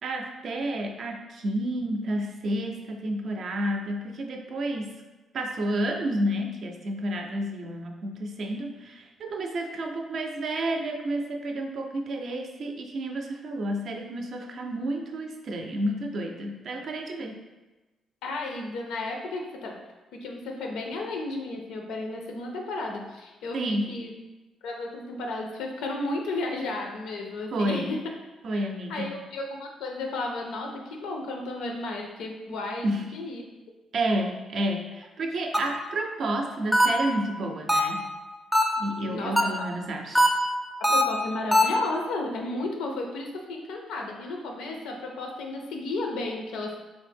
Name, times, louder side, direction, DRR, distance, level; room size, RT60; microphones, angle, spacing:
voice 1, 0.0-5.0 5.3-17.4 23.5-23.9 27.5-27.9 28.4-29.1 32.8-33.0 33.9-38.1 38.8-40.3, right 1 dB, 60° right, 3 dB, 0.4 m, -30 dB
voice 2, 18.2-19.8 20.1-24.1 24.6-28.0 28.5-33.4 39.1-39.7 40.8-46.8, left 2 dB, 85° left, 2 dB, 0.5 m, -33 dB
sound 1, 35.5-35.9 36.7-37.2 37.7-38.1 38.5-39.0 39.4-39.8 40.1-41.8, equal, 5° left, 0.4 m, -22 dB
3.3 x 2.0 x 3.3 m, 1.1 s
cardioid pair, 90°, 0 cm